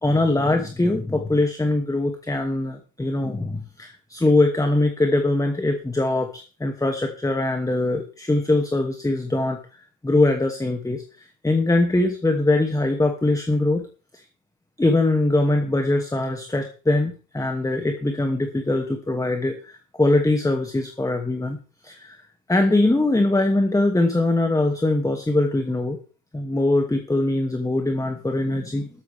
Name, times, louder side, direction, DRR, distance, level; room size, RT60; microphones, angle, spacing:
voice 1, 0.0-9.6 10.0-11.0 11.4-13.9 14.1-14.2 14.8-21.6 21.8-22.2 22.5-26.0 26.3-28.9, left 2 dB, 10° left, 5 dB, 2.5 m, -22 dB
15.0 x 13.5 x 3.6 m, 0.36 s
hypercardioid pair, 70°, 40 cm